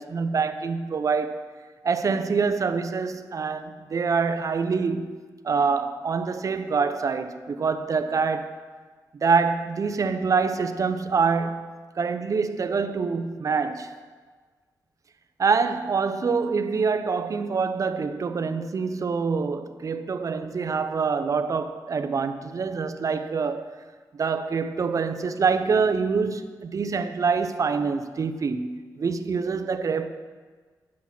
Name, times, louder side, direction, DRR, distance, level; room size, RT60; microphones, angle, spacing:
voice 1, 0.0-1.4 1.8-5.1 5.4-8.5 9.2-11.7 12.0-13.9 15.4-23.7 24.1-30.1, right 5 dB, 50° right, 0.7 m, -25 dB
10.5 x 7.4 x 6.0 m
cardioid pair, 85°, 7 cm